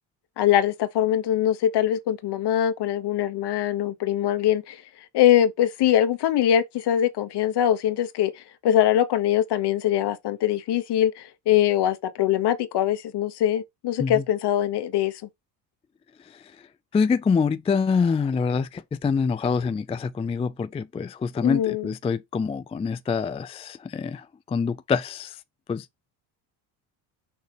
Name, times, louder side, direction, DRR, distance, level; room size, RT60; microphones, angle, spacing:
voice 1, 0.4-4.8 5.1-8.3 8.6-15.1 21.4-21.9, left 11 dB, 60° left, 1.3 m, -22 dB
voice 2, 16.9-25.4 25.7-25.9, left 5 dB, 15° left, 0.4 m, -26 dB
6.5 x 2.8 x 5.2 m
supercardioid pair, 80°, 45 cm